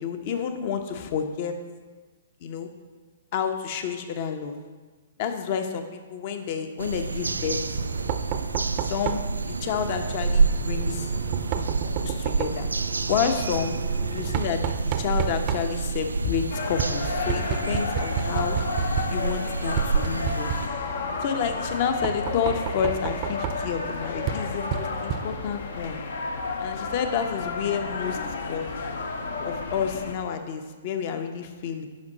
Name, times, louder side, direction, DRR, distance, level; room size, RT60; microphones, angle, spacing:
voice 1, 0.0-1.6 2.4-2.7 3.3-4.6 5.2-7.6 8.8-11.1 11.5-12.7 13.1-13.8 14.1-18.6 19.1-20.5 21.2-26.0 26.6-28.2 28.5-28.7 29.4-31.9, left 7 dB, 45° left, 7 dB, 0.9 m, -29 dB
sound 1, 6.8-20.7, right 4 dB, 90° right, 0.3 m, -28 dB
Knock, 7.2-25.7, right 9 dB, 40° right, 0.6 m, -33 dB
sound 2, 16.5-30.1, left 4 dB, 65° left, 0.9 m, -32 dB
10.5 x 5.2 x 4.1 m, 1.4 s
figure-of-eight pair, 120°, 0 cm